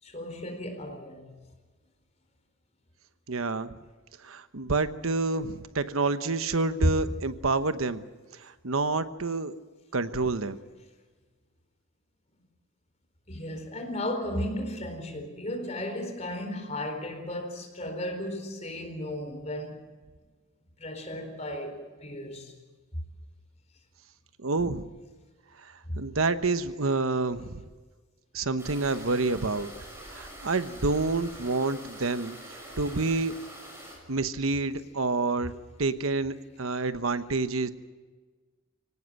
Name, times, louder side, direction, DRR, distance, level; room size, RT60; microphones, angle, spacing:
voice 1, 0.0-1.3 6.8-6.9 13.3-19.8 20.8-22.5 25.9-26.0, left 1 dB, 35° left, 4.3 m, -34 dB
voice 2, 3.3-3.8 4.2-8.0 8.4-9.5 9.9-10.6 24.4-24.9 25.6-27.6 28.3-29.7 30.1-33.3 34.1-37.7, right 3 dB, 85° right, 1.1 m, -28 dB
sound 1, 28.6-34.0, right 1 dB, 15° right, 6.3 m, -45 dB
24.5 x 18.0 x 7.7 m
head